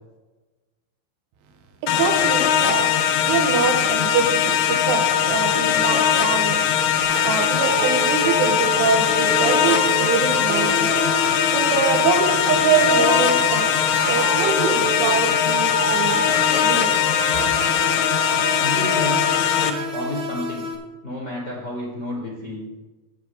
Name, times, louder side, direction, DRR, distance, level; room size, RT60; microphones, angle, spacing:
voice 1, 1.8-3.0 3.2-11.0 11.5-13.7 14.1-16.4 16.6-17.0, right 6 dB, 90° right, 5 dB, 3.6 m, -24 dB
sound 1, 1.9-19.7, left 9 dB, 80° left, 2.7 m, -20 dB
sound 2, 7.0-20.8, right 2 dB, 60° right, 3.2 m, -28 dB
voice 2, 18.6-20.7 21.0-22.6, left 1 dB, 40° left, -4 dB, 1.5 m, -31 dB
12.5 x 9.0 x 3.6 m, 1.2 s
omnidirectional pair, 5.4 m